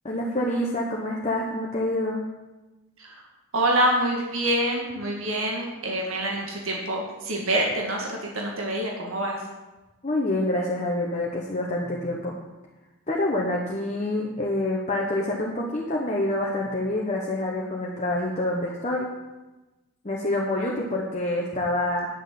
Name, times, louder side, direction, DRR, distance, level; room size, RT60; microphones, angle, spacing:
voice 1, 0.0-2.2 10.0-12.3 13.1-19.1 20.0-22.1, left 1 dB, 30° left, -3 dB, 1.1 m, -27 dB
voice 2, 3.5-9.4, right 1 dB, 70° right, -1 dB, 1.9 m, -26 dB
10.5 x 6.4 x 7.6 m, 1.1 s
head